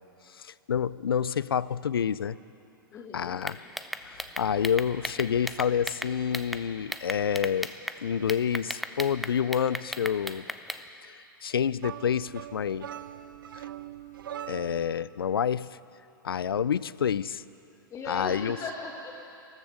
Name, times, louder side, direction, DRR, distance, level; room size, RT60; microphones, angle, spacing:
voice 1, 0.4-2.4 3.1-3.6 4.0-7.7 8.0-10.4 11.0-11.1 11.4-12.9 13.6-13.7 14.5-15.7 16.2-17.4 18.1-18.6, left 8 dB, 80° left, 19 dB, 0.4 m, -28 dB
voice 2, 2.9-3.4 17.9-19.2, left 3 dB, 25° left, 0 dB, 1.3 m, -37 dB
sound 1, 3.4-6.6 6.9-8.0 8.3-10.8, equal, ahead, 0.5 m, -35 dB
sound 2, 11.8-14.9, right 11 dB, 65° right, 0.6 m, -41 dB
15.0 x 13.5 x 6.4 m, 2.7 s
hypercardioid pair, 105°, 12 cm